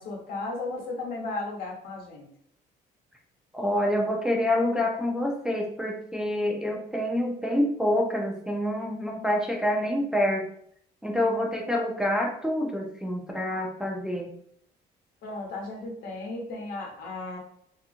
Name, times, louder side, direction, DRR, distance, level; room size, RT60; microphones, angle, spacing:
voice 1, 0.0-2.3 15.2-17.4, left 2 dB, 70° left, -1 dB, 1.0 m, -35 dB
voice 2, 3.5-10.5 11.0-14.3, left 1 dB, 5° right, 0 dB, 0.4 m, -27 dB
2.8 x 2.5 x 2.5 m, 0.66 s
cardioid pair, 110°, 17 cm